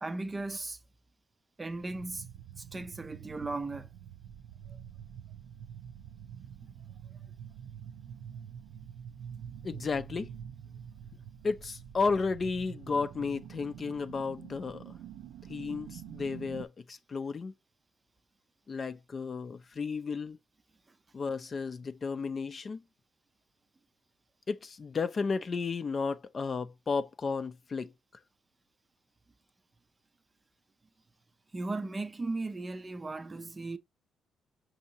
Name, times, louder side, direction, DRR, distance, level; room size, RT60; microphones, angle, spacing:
voice 1, 0.0-0.8 1.6-2.3 2.7-3.9 31.5-33.8, right 3 dB, 25° right, 0.4 m, -36 dB
sound 1, 1.7-16.7, right 9 dB, 85° right, 0.4 m, -47 dB
voice 2, 9.6-10.3 11.4-14.9 15.5-17.5 18.7-20.4 21.1-22.8 24.5-27.9, left 4 dB, 40° left, 0.4 m, -33 dB
5.4 x 2.7 x 2.8 m
cardioid pair, 90°, 0 cm